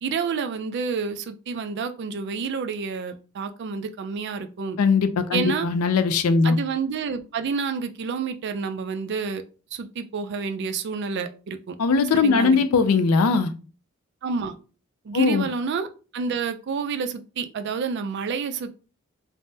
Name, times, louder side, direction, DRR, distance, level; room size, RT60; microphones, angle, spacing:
voice 1, 0.0-4.8 5.3-5.7 6.4-9.4 9.7-11.8 12.2-12.6 14.2-14.6 15.0-15.9 16.1-18.7, right 5 dB, 55° right, 0.3 m, -29 dB
voice 2, 4.8-6.6 11.8-13.5 15.1-15.5, left 4 dB, 90° left, 0.4 m, -20 dB
3.3 x 2.1 x 2.7 m
head